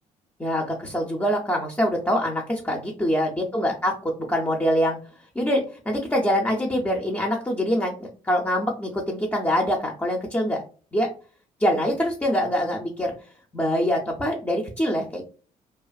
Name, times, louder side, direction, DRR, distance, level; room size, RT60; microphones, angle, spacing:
voice 1, 0.4-5.0 5.4-10.6 10.9-11.1 11.6-13.1 13.5-15.2, equal, 10° left, -1 dB, 0.6 m, -24 dB
2.4 x 2.4 x 2.2 m, 0.39 s
hypercardioid pair, 55°, 18 cm